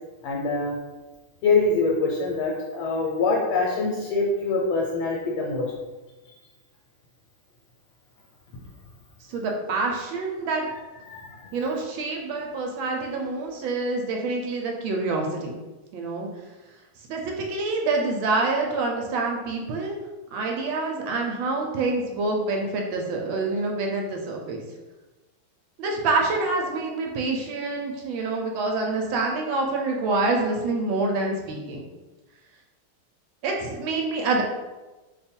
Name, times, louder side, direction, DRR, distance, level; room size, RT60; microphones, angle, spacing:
voice 1, 0.2-0.7 1.4-5.7 11.1-11.6, left 3 dB, 80° left, -3 dB, 1.5 m, -24 dB
voice 2, 9.3-10.6 11.5-15.6 15.9-16.3 17.1-20.0 20.3-24.6 25.8-31.9 33.4-34.4, right 3 dB, 75° right, 1 dB, 1.2 m, -26 dB
3.3 x 2.3 x 4.2 m, 1.2 s
omnidirectional pair, 2.3 m